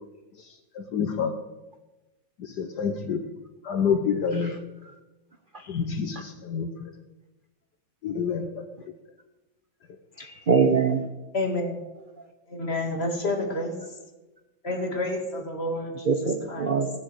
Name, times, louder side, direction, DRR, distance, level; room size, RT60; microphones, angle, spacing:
voice 1, 0.7-1.4 2.4-3.2 3.6-4.6 5.7-6.9 8.0-8.7, left 6 dB, 60° left, 7 dB, 1.4 m, -28 dB
voice 2, 10.2-11.0 16.1-17.0, right 5 dB, 40° right, 6 dB, 0.7 m, -24 dB
voice 3, 11.3-11.8 12.5-13.8 14.6-16.8, left 1 dB, 30° left, 2 dB, 2.7 m, -29 dB
17.5 x 7.9 x 8.2 m, 1.1 s
omnidirectional pair, 2.1 m